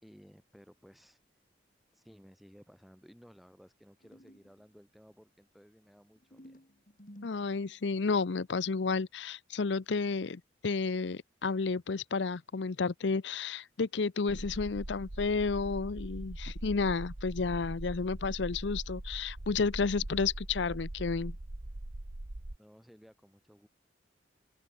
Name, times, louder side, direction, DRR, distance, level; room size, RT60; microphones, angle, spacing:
voice 1, 0.0-1.2 1.9-6.7 22.6-23.7, equal, ahead, 4.4 m, -57 dB
sound 1, 4.0-4.6 6.2-8.1, equal, 45° left, 7.3 m, -54 dB
voice 2, 7.2-21.4, left 4 dB, 65° left, 0.6 m, -31 dB
sound 2, 14.3-22.6, right 1 dB, 75° right, 1.5 m, -41 dB
open air
head